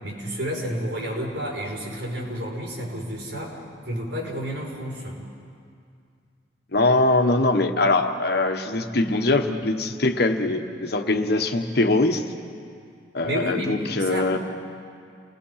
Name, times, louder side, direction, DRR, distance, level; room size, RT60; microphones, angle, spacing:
voice 1, 0.0-3.6 3.8-5.2 13.3-14.4, equal, 90° right, -3 dB, 5.8 m, -30 dB
voice 2, 6.7-12.2 13.1-14.4, left 2 dB, 65° left, 6 dB, 1.4 m, -22 dB
29.5 x 20.5 x 5.8 m, 2.3 s
head